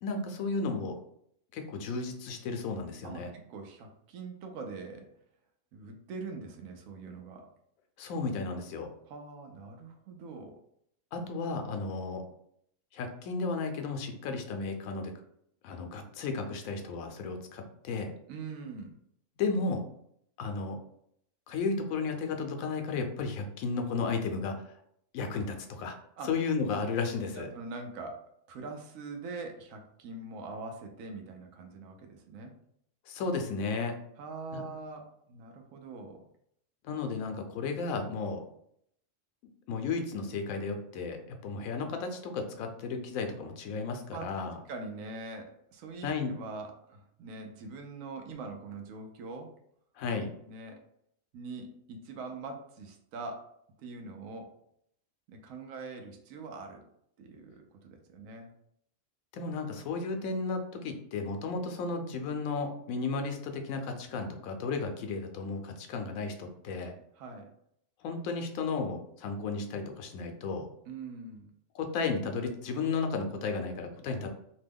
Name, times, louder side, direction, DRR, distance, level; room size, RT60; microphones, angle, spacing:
voice 1, 0.0-1.0 1.5-3.3 8.0-8.9 11.1-12.2 12.9-15.1 15.6-18.1 19.4-19.8 20.4-20.8 21.5-24.7 25.1-26.0 26.2-27.5 33.1-33.9 34.5-34.6 36.8-38.4 39.7-44.6 46.0-46.3 50.0-50.3 59.3-66.9 68.0-70.7 71.7-74.3, left 4 dB, 90° left, 5 dB, 1.0 m, -34 dB
voice 2, 3.0-5.1 5.7-7.5 9.1-10.6 18.3-19.0 26.2-26.3 27.4-28.2 28.5-32.5 34.2-36.3 44.1-44.3 44.7-49.5 50.4-50.8 51.3-53.5 53.8-54.5 55.3-56.8 57.2-58.5 67.1-67.5 70.9-71.5, right 3 dB, 80° right, 4 dB, 1.0 m, -43 dB
2.9 x 2.1 x 3.4 m, 0.71 s
omnidirectional pair, 1.4 m